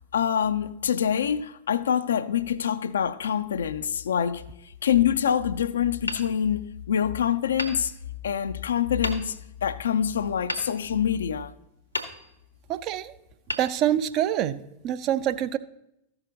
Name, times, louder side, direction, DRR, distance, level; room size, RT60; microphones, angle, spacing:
voice 1, 0.1-4.4 4.8-7.9 8.2-9.3 9.6-11.5, left 8 dB, 65° left, 0.4 m, -25 dB
Hammer, 6.1-7.0 7.6-8.5 9.0-9.6 10.5-11.4 11.9-12.7 13.4-14.4, left 2 dB, 85° left, 0.9 m, -36 dB
voice 2, 12.7-13.1 13.6-15.6, right 11 dB, 40° right, 0.4 m, -26 dB
14.0 x 5.9 x 3.8 m
figure-of-eight pair, 90°, 0 cm